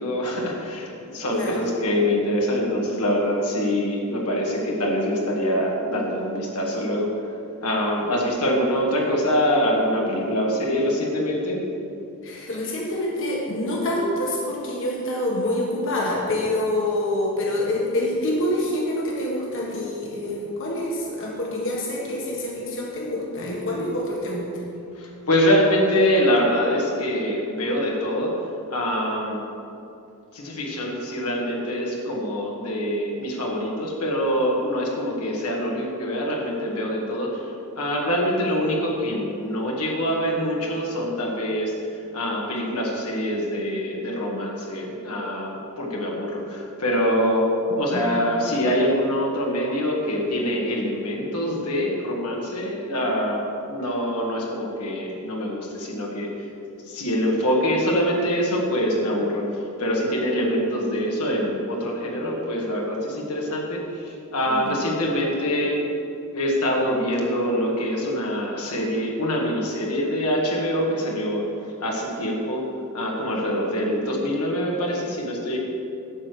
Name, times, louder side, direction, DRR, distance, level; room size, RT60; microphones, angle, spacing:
voice 1, 0.0-7.1 7.6-11.7 24.9-28.3 28.7-29.4 30.3-37.4 37.8-41.7 42.1-47.5 47.8-56.3 56.9-65.8 66.3-71.4 71.8-72.6 72.9-75.6, equal, 85° left, -2 dB, 1.9 m, -24 dB
voice 2, 12.2-24.5 47.9-48.1 64.5-64.8, left 1 dB, 60° left, -3 dB, 1.7 m, -26 dB
11.5 x 4.9 x 7.9 m, 2.7 s
head